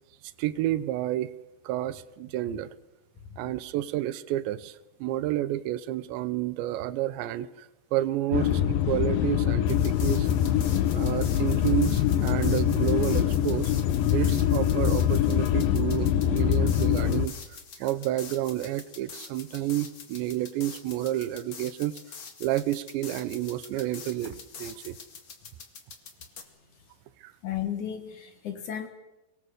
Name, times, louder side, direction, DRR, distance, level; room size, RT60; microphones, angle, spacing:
voice 1, 0.4-1.3 1.6-2.7 3.4-7.7 7.9-10.3 10.9-13.7 14.1-17.4 17.8-22.0 22.4-25.0 27.2-27.3, right 14 dB, 90° right, 15 dB, 3.2 m, -30 dB
sound 1, 8.3-17.3, left 10 dB, 75° left, 2.3 m, -24 dB
sound 2, 9.7-26.4, left 5 dB, 40° left, 2.0 m, -45 dB
voice 2, 27.4-28.9, left 10 dB, 60° left, 8 dB, 2.4 m, -33 dB
24.5 x 20.5 x 6.6 m, 0.99 s
omnidirectional pair, 5.0 m